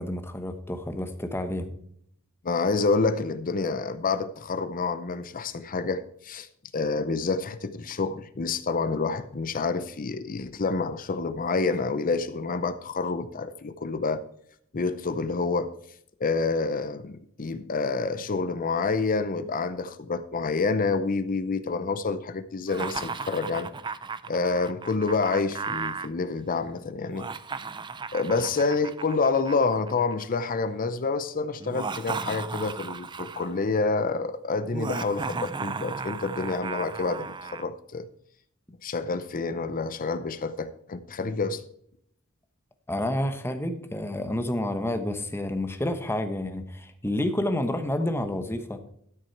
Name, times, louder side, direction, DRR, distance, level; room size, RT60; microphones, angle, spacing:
voice 1, 0.0-1.7 42.9-48.8, left 1 dB, 10° left, 8 dB, 1.0 m, -29 dB
voice 2, 2.4-6.5 6.7-14.2 14.7-15.7 16.2-23.7 24.3-27.3 28.1-38.1 38.8-41.6, left 4 dB, 40° left, 12 dB, 0.6 m, -28 dB
Laughter, 22.7-26.1 27.1-30.4 31.6-33.6 34.7-37.7, right 4 dB, 20° right, 0.4 m, -35 dB
13.0 x 6.1 x 4.6 m, 0.67 s
head